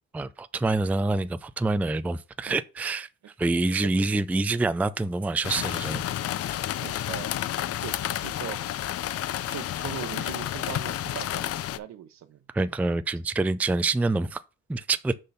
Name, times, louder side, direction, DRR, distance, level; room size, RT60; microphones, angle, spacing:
voice 1, 0.1-3.1 3.4-6.0 12.5-14.4 14.7-15.1, right 3 dB, 5° right, 0.4 m, -26 dB
sound 1, 5.4-11.8, left 12 dB, 50° left, 0.5 m, -30 dB
voice 2, 6.8-7.4 7.8-8.6 9.5-12.7, right 10 dB, 65° right, 1.0 m, -40 dB
6.6 x 3.9 x 5.6 m
cardioid pair, 90°, 30 cm